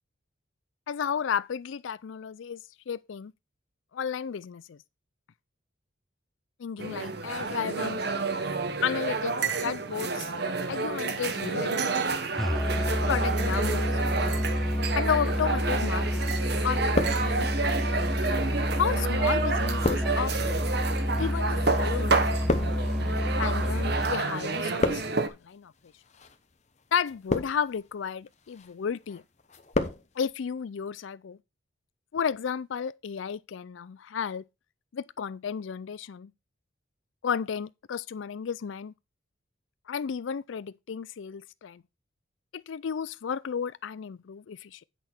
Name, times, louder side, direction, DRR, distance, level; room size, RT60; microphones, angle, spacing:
voice 1, 0.9-2.6 2.9-3.3 3.9-4.8 6.6-8.0 8.8-9.3 9.6-10.3 10.7-12.0 12.9-13.9 15.0-16.2 16.6-18.0 18.8-20.6 21.2-22.9 23.4-25.7 26.9-29.2 30.2-31.4 32.1-34.4 34.9-36.3 37.2-38.9 39.9-41.8 42.5-44.8, left 7 dB, 75° left, 0.4 m, -33 dB
sound 1, 6.8-25.3, right 4 dB, 55° right, 1.0 m, -30 dB
Musical instrument, 12.4-24.2, equal, ahead, 0.5 m, -29 dB
sound 2, 15.8-16.4 16.7-17.7 18.4-24.1 24.3-25.4 26.1-26.4 27.0-27.8 28.3-28.7 29.1-30.0 30.3-30.4, left 2 dB, 35° left, 0.9 m, -32 dB
8.4 x 5.9 x 4.4 m
head